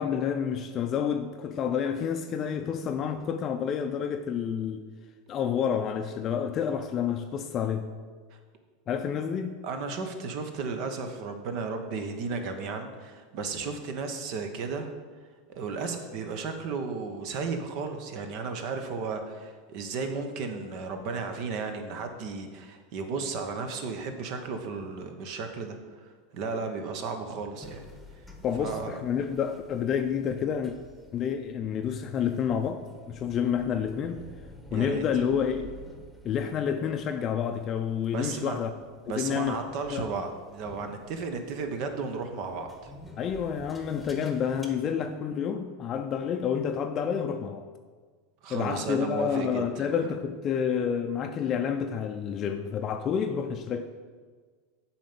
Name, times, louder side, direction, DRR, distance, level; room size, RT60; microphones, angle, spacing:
voice 1, 0.0-4.9 5.3-7.9 8.9-9.6 28.4-30.7 31.1-34.2 34.7-35.7 36.2-38.7 39.2-40.1 43.2-47.7 48.5-54.0, left 7 dB, 40° left, 6 dB, 0.5 m, -29 dB
voice 2, 9.6-14.9 15.5-27.8 28.6-29.0 34.7-35.1 38.1-38.6 39.1-42.9 48.4-49.9, right 4 dB, 55° right, 6 dB, 1.1 m, -34 dB
sound 1, 27.6-44.7, left 1 dB, ahead, 1.3 m, -51 dB
7.4 x 4.4 x 6.9 m, 1.5 s
hypercardioid pair, 90°, 0 cm